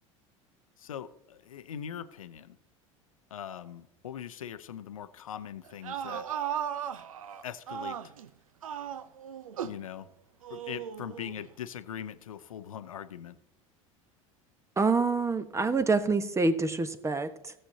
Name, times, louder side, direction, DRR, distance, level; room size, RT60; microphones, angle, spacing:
voice 1, 0.8-2.6 3.3-6.3 7.4-8.0 9.6-10.1 10.5-13.4, left 9 dB, 85° left, 13 dB, 0.6 m, -41 dB
sound 1, 5.7-8.3 8.6-9.9 10.4-11.4, right 9 dB, 85° right, 0.6 m, -36 dB
voice 2, 14.8-17.5, right 3 dB, 15° right, 11 dB, 1.1 m, -27 dB
16.5 x 7.6 x 2.8 m, 0.80 s
hypercardioid pair, 75°, 17 cm